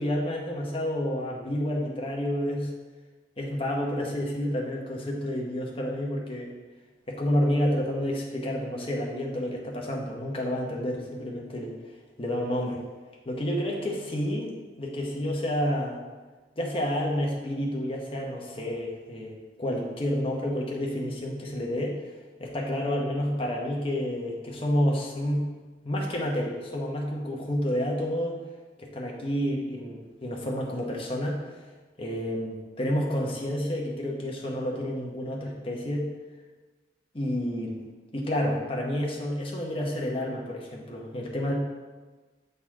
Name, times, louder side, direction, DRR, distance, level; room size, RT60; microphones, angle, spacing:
voice 1, 0.0-2.7 3.4-6.5 7.1-11.7 12.2-12.8 13.2-14.5 14.8-16.0 16.6-22.0 22.4-25.5 25.8-28.4 28.8-31.4 32.0-36.1 37.1-37.8 38.1-41.5, equal, 30° left, -2 dB, 1.0 m, -29 dB
7.7 x 4.1 x 3.6 m, 1.3 s
head